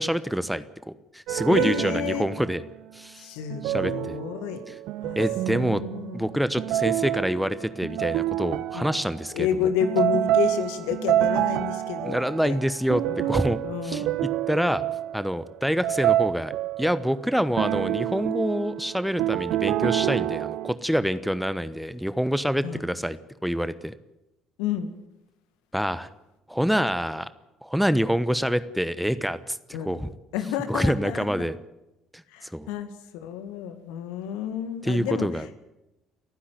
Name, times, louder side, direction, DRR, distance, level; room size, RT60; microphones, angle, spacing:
voice 1, 0.0-2.6 2.9-3.3 3.6-4.2 4.7-4.8 5.2-5.8 6.1-9.7 12.0-13.6 13.8-14.8 15.1-16.5 16.8-23.9 25.7-26.1 26.5-27.3 27.6-30.1 30.7-31.6 32.1-32.7 34.8-35.5, equal, ahead, 14 dB, 1.0 m, -26 dB
sound 1, 1.3-2.6 3.5-9.3 9.8-17.2 17.6-20.7, right 13 dB, 60° right, 0.6 m, -28 dB
voice 2, 1.4-2.3 3.2-4.6 5.0-5.2 5.5-6.2 8.7-9.0 9.3-12.6 13.1-13.3 13.6-14.1 22.6-22.8 24.6-24.9 29.7-29.9 30.3-31.5 32.3-35.3, left 9 dB, 65° left, 10 dB, 1.9 m, -30 dB
29.5 x 10.0 x 9.4 m, 0.94 s
figure-of-eight pair, 50°, 0 cm